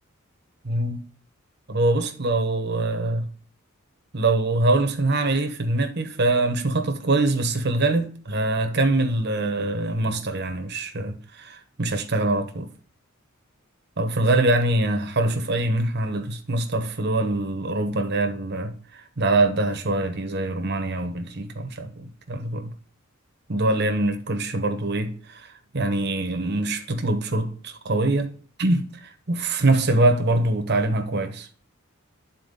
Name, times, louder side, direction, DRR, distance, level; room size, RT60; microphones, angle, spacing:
voice 1, 0.6-1.0 1.7-3.3 4.1-12.7 14.0-22.7 23.5-28.3 28.6-31.5, right 2 dB, 50° right, 1.0 m, -24 dB
10.0 x 4.2 x 4.0 m
head